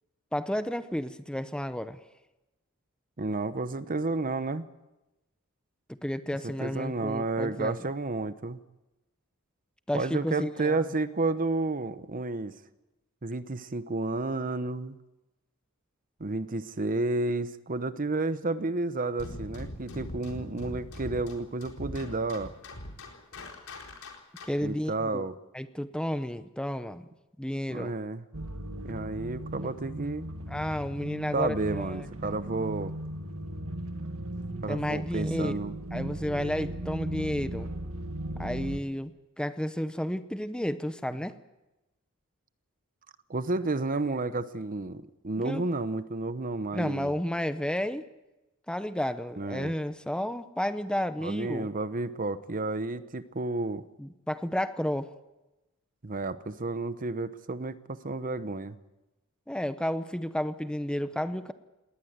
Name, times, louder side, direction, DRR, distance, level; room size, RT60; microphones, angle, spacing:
voice 1, 0.3-2.0 5.9-7.8 9.9-10.9 24.5-25.3 25.5-27.1 27.4-27.9 30.5-32.3 34.7-37.7 38.4-41.3 45.4-45.7 46.7-48.0 48.7-51.7 54.0-55.1 59.5-61.5, equal, 5° left, 11 dB, 0.7 m, -32 dB
voice 2, 3.2-4.7 6.4-8.6 9.9-12.5 13.2-15.0 16.2-22.5 24.6-25.3 27.7-28.2 28.8-30.3 31.3-32.9 34.6-35.7 43.3-47.1 49.4-49.7 51.2-53.9 56.0-58.8, right 3 dB, 40° right, 13 dB, 0.9 m, -31 dB
sound 1, 19.2-24.7, left 1 dB, 75° left, 4.2 m, -41 dB
sound 2, 28.3-38.8, right 1 dB, 70° right, 1.9 m, -37 dB
20.0 x 19.0 x 8.1 m, 1.0 s
head